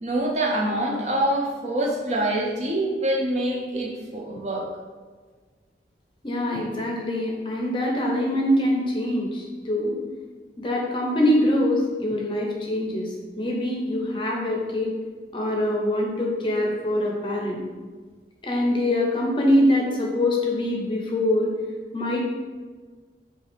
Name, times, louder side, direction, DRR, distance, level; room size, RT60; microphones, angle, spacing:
voice 1, 0.0-4.7, right 1 dB, 40° right, 0 dB, 0.5 m, -25 dB
voice 2, 6.2-10.0 10.6-14.9 15.3-17.6 18.4-21.5 21.9-22.2, left 1 dB, 30° left, -1 dB, 0.6 m, -24 dB
5.2 x 2.4 x 3.4 m, 1.4 s
head